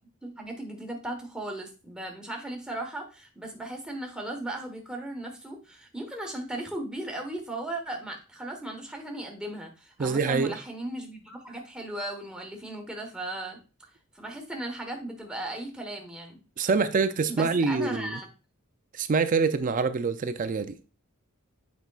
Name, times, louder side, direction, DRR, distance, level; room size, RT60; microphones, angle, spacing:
voice 1, 0.2-13.6 14.1-16.4 17.3-18.3, right 1 dB, 5° right, 1.2 m, -36 dB
voice 2, 10.0-10.5 16.6-18.2 18.9-20.8, right 4 dB, 40° right, 0.4 m, -25 dB
8.0 x 5.1 x 2.4 m
head